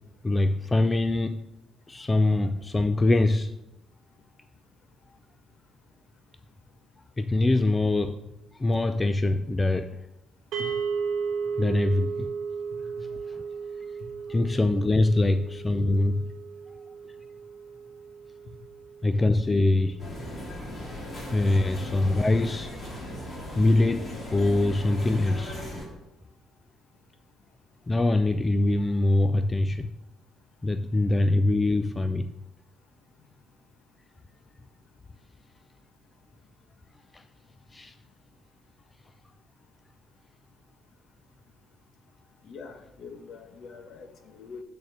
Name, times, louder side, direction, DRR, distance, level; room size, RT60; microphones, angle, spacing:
voice 1, 0.2-1.4 1.9-3.5 7.2-8.2 8.6-9.9 11.6-12.3 14.3-16.2 19.0-20.0 21.3-22.8 23.6-25.6 27.9-29.9 30.6-32.3 37.1-37.2 37.7-37.9, left 2 dB, 20° left, 0.4 m, -23 dB
sound 1, 10.5-20.8, right 6 dB, 75° right, 1.1 m, -35 dB
sound 2, 20.0-25.8, equal, 35° left, 2.9 m, -37 dB
voice 2, 42.5-44.6, left 4 dB, 60° left, 1.2 m, -43 dB
9.1 x 4.3 x 6.6 m
cardioid pair, 115°, 0 cm